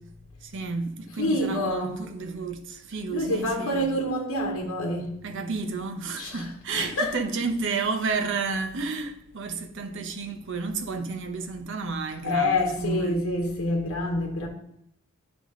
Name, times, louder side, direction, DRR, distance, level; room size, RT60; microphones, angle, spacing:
voice 1, 0.4-3.9 5.2-13.3, right 4 dB, 55° right, 0.8 m, -31 dB
voice 2, 1.2-2.0 3.1-5.2 6.2-7.1 12.2-14.5, left 1 dB, 60° left, 1.0 m, -27 dB
9.8 x 3.5 x 3.7 m
head